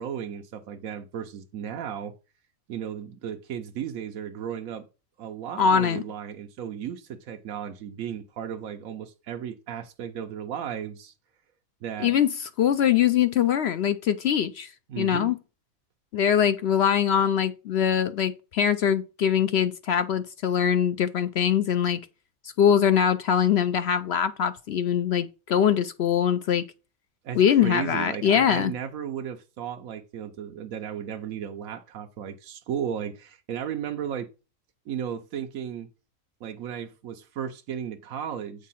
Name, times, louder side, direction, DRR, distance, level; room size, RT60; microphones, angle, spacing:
voice 1, 0.0-2.1 2.7-4.9 5.2-11.1 11.8-12.1 14.9-15.3 27.2-34.3 34.9-35.9 36.4-38.7, right 8 dB, 75° right, 1.2 m, -35 dB
voice 2, 5.6-6.0 12.0-14.7 15.0-15.4 16.1-22.0 22.6-26.6 27.3-28.7, left 8 dB, 65° left, 0.7 m, -22 dB
8.3 x 3.7 x 5.5 m
omnidirectional pair, 1.4 m